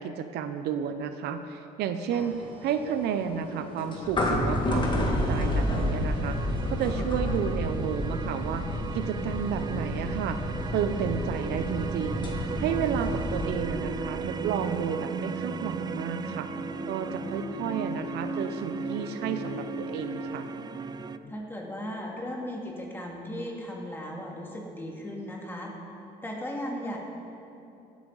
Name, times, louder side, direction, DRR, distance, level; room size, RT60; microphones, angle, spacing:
voice 1, 0.0-10.4 10.7-12.3 12.6-16.5 16.9-20.4, right 8 dB, 80° right, 9 dB, 0.6 m, -32 dB
sound 1, 2.1-13.5, left 1 dB, 30° left, 1.7 m, -30 dB
sound 2, 3.4-21.3, left 4 dB, 45° left, 1.0 m, -43 dB
sound 3, 4.8-21.2, right 6 dB, 25° right, 0.3 m, -37 dB
voice 2, 12.8-13.2 21.3-25.7 26.2-27.0, equal, 10° left, -1 dB, 2.1 m, -37 dB
16.5 x 8.3 x 3.9 m, 2.9 s
cardioid pair, 110°, 17 cm